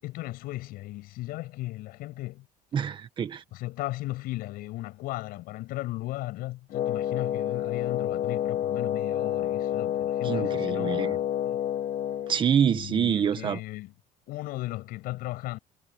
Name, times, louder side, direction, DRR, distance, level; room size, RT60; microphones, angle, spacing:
voice 1, 0.0-2.5 3.5-11.6 12.6-13.9 14.3-15.6, left 18 dB, 80° left, 7.9 m, -36 dB
voice 2, 2.7-3.4 10.2-11.2 12.3-13.6, right 8 dB, 35° right, 1.6 m, -26 dB
Wind instrument woodwind instrument, 6.7-12.4, left 11 dB, 55° left, 2.2 m, -29 dB
cardioid pair, 165°, 15 cm